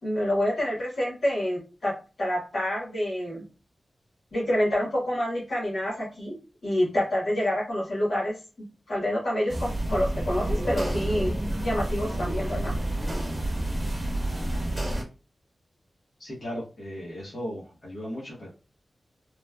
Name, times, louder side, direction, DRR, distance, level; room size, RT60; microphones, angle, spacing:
voice 1, 0.0-3.4 4.3-6.3 6.6-8.4 8.9-11.4 11.6-12.7, left 1 dB, 75° left, -4 dB, 1.2 m, -27 dB
sound 1, 9.5-15.0, right 1 dB, 30° right, 0.9 m, -29 dB
voice 2, 16.2-18.5, equal, 55° left, -7 dB, 1.0 m, -36 dB
3.1 x 2.1 x 2.2 m, 0.33 s
wide cardioid pair, 85°, 0 cm